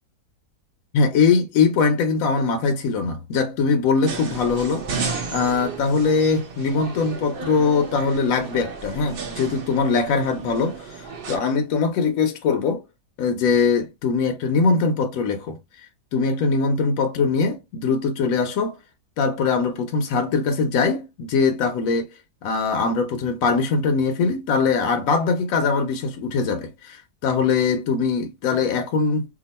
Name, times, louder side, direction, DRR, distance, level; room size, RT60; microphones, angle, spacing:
voice 1, 0.9-4.9 5.3-12.8 13.2-15.6 16.1-18.8 19.2-22.1 22.4-29.3, left 4 dB, 70° left, 0.9 m, -22 dB
sound 1, 4.1-11.4, right 5 dB, 50° right, 0.7 m, -33 dB
2.8 x 2.3 x 4.0 m
omnidirectional pair, 1.7 m